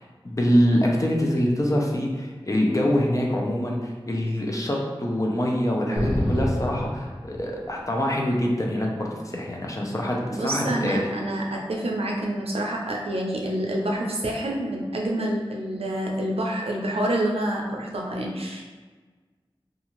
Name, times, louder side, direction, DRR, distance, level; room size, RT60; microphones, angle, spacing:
voice 1, 0.2-11.0, equal, 35° left, -1 dB, 0.5 m, -24 dB
sound 1, 6.0-7.9, equal, 80° left, 1.1 m, -28 dB
voice 2, 10.3-18.7, right 1 dB, 85° right, -1 dB, 0.5 m, -27 dB
2.5 x 2.4 x 2.9 m, 1.4 s
wide cardioid pair, 50°, 10 cm